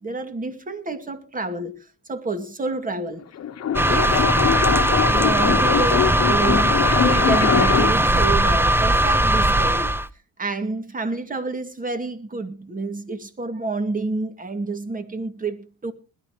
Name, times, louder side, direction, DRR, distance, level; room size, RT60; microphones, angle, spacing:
voice 1, 0.0-1.8 2.1-3.2 3.9-4.3 5.1-9.9 10.4-15.9, right 3 dB, 25° right, 2.2 m, -28 dB
sound 1, 3.2-8.1, left 9 dB, 55° left, 1.3 m, -23 dB
sound 2, 3.7-10.1, right 1 dB, 10° right, 0.6 m, -19 dB
20.5 x 12.0 x 3.1 m
cardioid pair, 90°, 30 cm